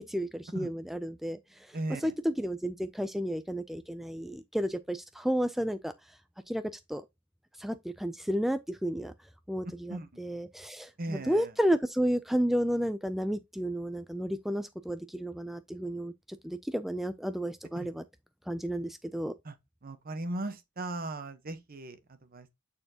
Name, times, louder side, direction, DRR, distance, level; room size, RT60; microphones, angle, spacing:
voice 1, 0.0-1.4 2.0-5.9 6.5-6.6 6.9-7.0 7.6-9.1 9.5-18.0 18.5-19.3, equal, ahead, 0.3 m, -32 dB
voice 2, 1.7-2.1 9.6-10.1 11.0-11.5 17.8-17.9 19.4-19.6 19.8-22.5, right 2 dB, 45° right, 1.0 m, -38 dB
8.9 x 4.3 x 2.8 m
head